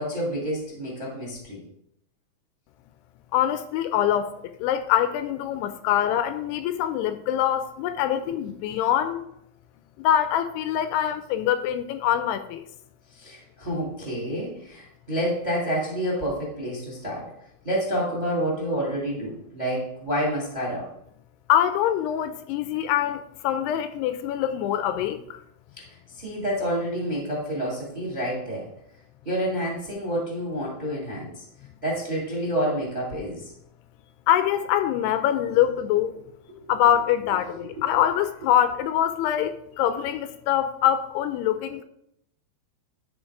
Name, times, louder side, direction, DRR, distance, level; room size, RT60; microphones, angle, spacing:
voice 1, 0.0-1.6 13.1-17.3 17.6-20.9 25.8-28.7 29.2-31.4 31.8-33.5 36.5-36.7, equal, 20° right, 1.2 m, -29 dB
voice 2, 3.3-4.3 4.6-9.3 10.0-12.7 21.5-25.4 34.3-36.1 36.7-41.8, left 10 dB, 80° left, 2.4 m, -24 dB
12.5 x 4.4 x 4.7 m
omnidirectional pair, 5.2 m